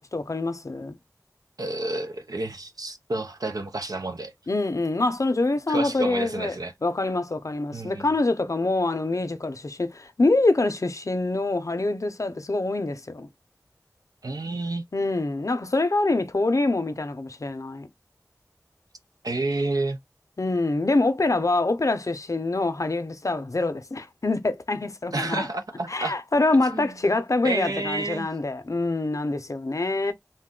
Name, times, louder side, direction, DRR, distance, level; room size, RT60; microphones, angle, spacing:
voice 1, 0.1-1.0 4.5-6.6 6.8-13.3 14.9-17.9 20.4-25.5 25.9-30.1, left 2 dB, 60° left, 0.5 m, -25 dB
voice 2, 1.6-4.3 5.7-6.7 7.7-8.1 14.2-14.8 19.2-20.0 25.1-26.2 26.7-26.9 27.4-28.3, right 2 dB, 85° right, 0.6 m, -30 dB
2.6 x 2.2 x 3.6 m
wide cardioid pair, 45°, 6 cm